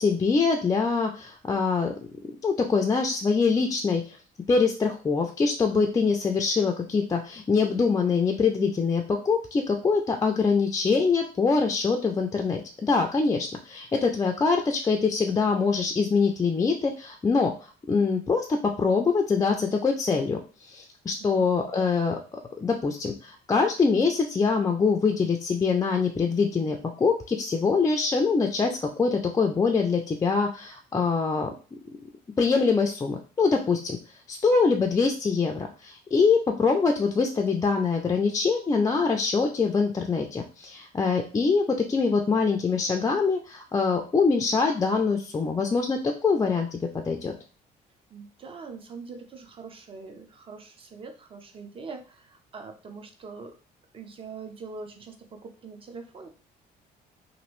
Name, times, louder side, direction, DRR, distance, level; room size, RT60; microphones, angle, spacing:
voice 1, 0.0-1.9 2.4-4.2 4.5-31.5 32.4-34.0 34.3-47.3, left 4 dB, 20° left, 2 dB, 0.4 m, -24 dB
voice 2, 48.1-53.5 53.9-56.3, right 4 dB, 30° right, 6 dB, 0.6 m, -43 dB
3.0 x 2.5 x 3.0 m, 0.36 s
cardioid pair, 110°, 17 cm